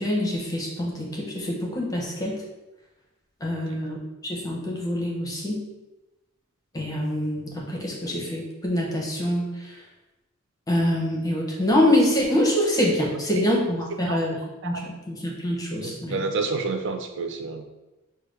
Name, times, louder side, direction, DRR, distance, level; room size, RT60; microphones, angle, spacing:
voice 1, 0.0-2.3 3.4-4.0 4.2-5.6 6.7-9.8 10.7-14.4 14.6-16.2, left 1 dB, 15° left, -2 dB, 0.7 m, -25 dB
voice 2, 15.8-17.6, right 4 dB, 55° right, 6 dB, 0.5 m, -30 dB
5.9 x 2.2 x 3.2 m, 1.0 s
head